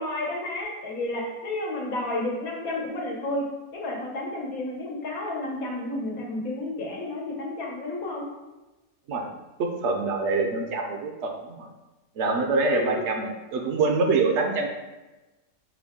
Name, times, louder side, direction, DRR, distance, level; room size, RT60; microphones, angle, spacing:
voice 1, 0.0-3.4 3.7-8.3 12.7-13.1, left 2 dB, 80° left, -1 dB, 1.4 m, -31 dB
voice 2, 9.6-11.7 12.2-14.7, right 3 dB, 65° right, 3 dB, 0.8 m, -25 dB
5.9 x 2.1 x 3.5 m, 1.1 s
omnidirectional pair, 1.5 m